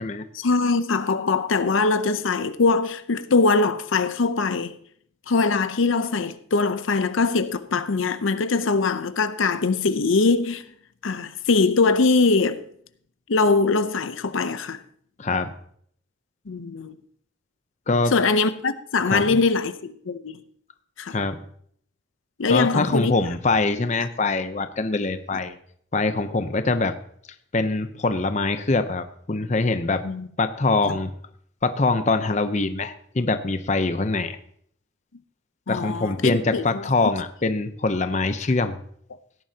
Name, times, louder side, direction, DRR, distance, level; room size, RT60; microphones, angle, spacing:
voice 1, 0.3-4.7 5.3-10.6 11.0-12.6 13.3-14.8 16.5-17.0 18.1-20.4 21.0-21.2 22.4-23.1 30.0-30.3 30.9-31.0 35.7-37.1, left 4 dB, 80° left, 0.6 m, -22 dB
voice 2, 15.2-15.5 17.9-18.1 19.1-19.2 21.1-21.4 22.5-25.6 25.9-26.9 27.5-30.1 30.4-31.1 31.6-34.4 35.7-38.8, left 3 dB, 35° left, 0.7 m, -23 dB
17.5 x 11.0 x 2.8 m
head